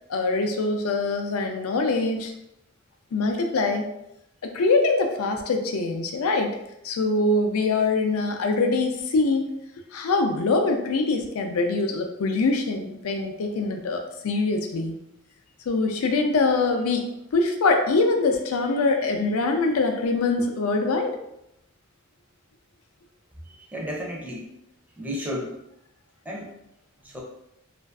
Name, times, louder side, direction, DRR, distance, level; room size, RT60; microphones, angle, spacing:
voice 1, 0.1-2.3 3.1-3.9 4.4-6.5 6.8-9.5 9.9-15.0 15.7-21.2, left 3 dB, 90° left, 4 dB, 0.4 m, -23 dB
voice 2, 23.4-24.5 25.0-25.6 26.3-26.5 27.0-27.2, equal, 10° right, -2 dB, 0.4 m, -33 dB
2.5 x 2.3 x 2.2 m, 0.82 s
head